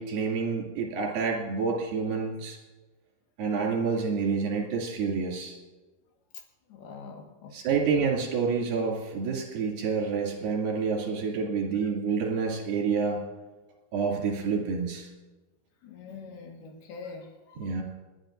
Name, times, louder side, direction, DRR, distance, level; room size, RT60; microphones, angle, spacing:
voice 1, 0.0-2.6 3.4-5.6 7.5-13.2 13.9-15.1 17.6-17.8, right 5 dB, 70° right, -1 dB, 4.2 m, -28 dB
voice 2, 6.7-8.1 15.8-17.8, left 4 dB, 85° left, 2 dB, 3.6 m, -44 dB
29.0 x 10.5 x 2.6 m, 1.2 s
omnidirectional pair, 4.5 m